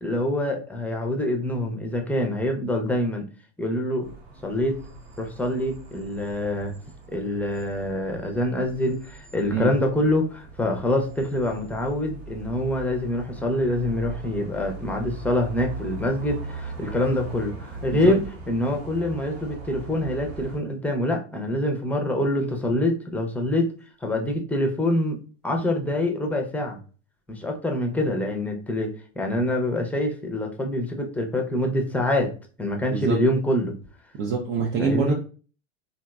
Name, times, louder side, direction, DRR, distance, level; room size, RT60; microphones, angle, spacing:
voice 1, 0.0-3.3 3.6-4.1 4.4-4.8 5.2-6.7 7.1-23.7 24.0-25.2 25.4-26.8 27.3-32.3 32.6-33.7 34.8-35.1, left 1 dB, 5° left, 2 dB, 0.6 m, -25 dB
sound 1, 4.0-20.6, right 4 dB, 75° right, 1.2 m, -40 dB
voice 2, 32.9-33.2 34.2-35.1, right 5 dB, 40° right, 0 dB, 0.5 m, -25 dB
2.8 x 2.5 x 2.3 m, 0.37 s
hypercardioid pair, 95°, 31 cm